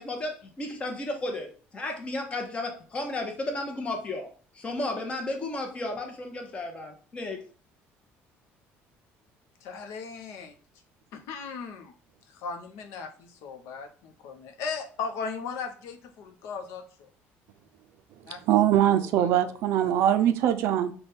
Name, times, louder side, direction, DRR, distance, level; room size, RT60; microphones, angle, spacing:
voice 1, 0.0-1.5 1.7-4.3 4.5-7.4, left 2 dB, 25° left, 3 dB, 0.8 m, -33 dB
voice 2, 9.6-10.6 11.1-11.9 12.3-17.1 18.3-18.4 19.0-19.3, left 5 dB, 80° left, 5 dB, 0.7 m, -37 dB
voice 3, 18.5-20.9, right 11 dB, 70° right, 10 dB, 0.4 m, -22 dB
4.1 x 2.2 x 3.4 m, 0.41 s
cardioid pair, 145°, 5 cm